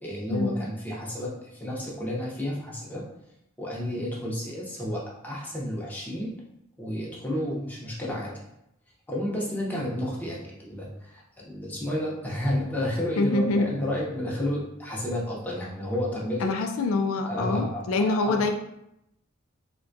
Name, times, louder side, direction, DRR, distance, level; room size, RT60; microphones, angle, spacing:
voice 1, 0.0-3.0 3.6-6.3 6.8-8.3 9.1-16.5 17.2-18.4, left 1 dB, 10° left, -5 dB, 0.7 m, -31 dB
voice 2, 13.2-13.7 16.4-18.5, left 3 dB, 85° left, 5 dB, 0.3 m, -25 dB
3.6 x 2.2 x 2.5 m, 0.81 s
head